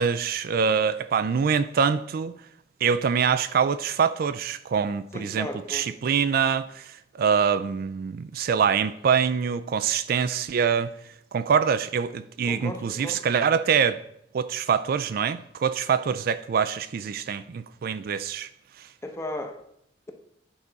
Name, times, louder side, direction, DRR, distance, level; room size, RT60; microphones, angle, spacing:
voice 1, 0.0-2.4 2.8-10.9 11.3-14.0 14.3-18.5 18.8-18.9, right 6 dB, 55° right, 0.3 m, -24 dB
voice 2, 5.1-5.8 12.5-13.2 19.0-19.6, left 1 dB, 15° left, 0.9 m, -35 dB
9.8 x 4.9 x 4.0 m
head